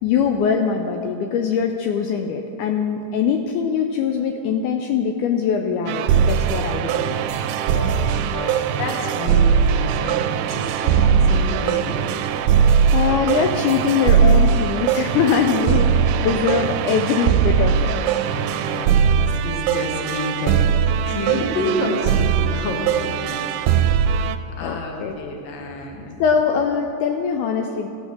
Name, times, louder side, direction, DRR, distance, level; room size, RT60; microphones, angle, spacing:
voice 1, 0.0-7.2 12.6-17.9 24.6-25.2 26.2-27.9, left 6 dB, 80° left, 4 dB, 1.9 m, -22 dB
sound 1, 5.9-24.4, right 7 dB, 80° right, 1.9 m, -20 dB
voice 2, 7.7-10.2 10.5-12.2 12.6-12.8 18.3-20.6 21.0-23.5 24.6-26.1, left 2 dB, 50° left, 1 dB, 1.5 m, -29 dB
16.0 x 5.5 x 6.4 m, 2.6 s
omnidirectional pair, 3.8 m